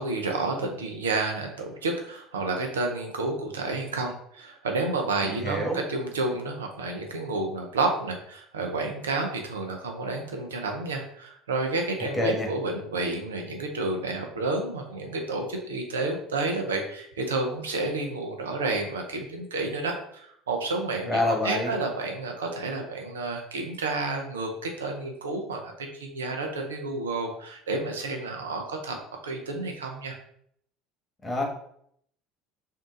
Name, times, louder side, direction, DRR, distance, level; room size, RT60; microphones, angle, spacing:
voice 1, 0.0-29.0 29.2-30.2, right 3 dB, 90° right, 3 dB, 0.6 m, -30 dB
voice 2, 5.2-5.8 12.1-12.5 21.1-21.7 31.2-31.4, left 2 dB, 20° left, 2 dB, 1.2 m, -26 dB
3.7 x 2.7 x 3.7 m, 0.68 s
hypercardioid pair, 70°, 0 cm